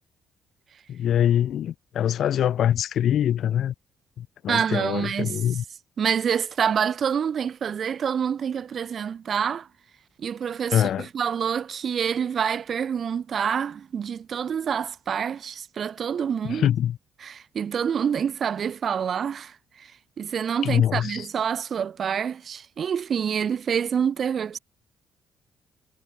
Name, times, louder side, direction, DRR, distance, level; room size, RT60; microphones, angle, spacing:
voice 1, 0.9-3.7 4.2-5.6 10.7-11.1 16.4-17.0 20.6-21.3, left 10 dB, 70° left, 2.0 m, -24 dB
voice 2, 4.5-5.4 6.0-9.7 10.2-16.7 17.2-19.9 20.2-24.6, right 7 dB, 55° right, 4.2 m, -27 dB
cardioid pair, 90°, 0 cm